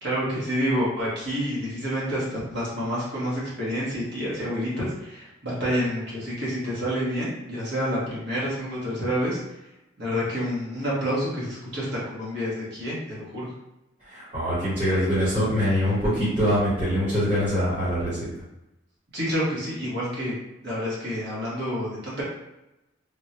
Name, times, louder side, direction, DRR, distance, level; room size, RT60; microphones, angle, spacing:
voice 1, 0.0-9.4 10.0-13.5 19.1-20.4 20.6-22.2, equal, 60° right, -7 dB, 1.3 m, -28 dB
voice 2, 14.0-18.2, equal, 35° right, -12 dB, 1.4 m, -24 dB
3.5 x 2.2 x 2.7 m, 0.93 s
head